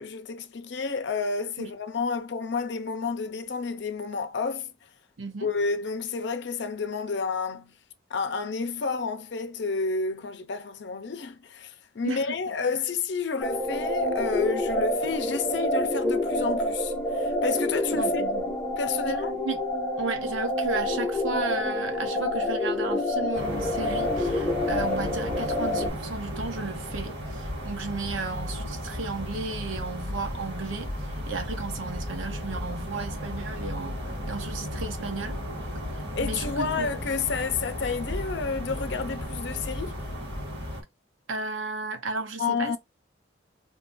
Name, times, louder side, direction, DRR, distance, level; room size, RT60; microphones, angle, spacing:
voice 1, 0.0-4.7 5.4-7.8 8.1-18.2 18.8-19.4 36.1-40.0 42.4-42.8, left 5 dB, 65° left, 0.5 m, -30 dB
voice 2, 5.2-5.5 12.0-12.4 17.9-18.4 19.4-19.6 20.0-30.9 31.3-34.0 34.3-35.4 36.2-36.9 41.3-42.8, right 3 dB, 85° right, 0.8 m, -34 dB
sound 1, 13.4-25.9, left 1 dB, 10° left, 0.7 m, -27 dB
sound 2, 23.3-40.8, equal, 65° right, 1.5 m, -35 dB
2.8 x 2.5 x 3.7 m
head